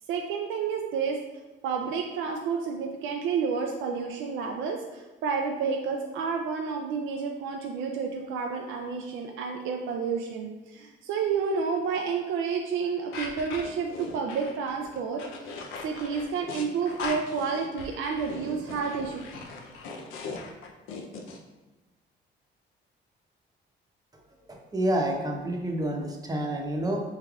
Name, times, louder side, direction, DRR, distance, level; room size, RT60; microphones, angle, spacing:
voice 1, 0.1-1.2 1.6-15.2 15.8-19.2, right 5 dB, 85° right, 2 dB, 0.4 m, -30 dB
sound 1, 13.1-21.4, left 4 dB, 90° left, 0.6 m, -39 dB
voice 2, 24.5-27.0, right 1 dB, 20° right, 1 dB, 0.8 m, -28 dB
5.7 x 3.3 x 2.4 m, 1.1 s
cardioid pair, 90°, 20 cm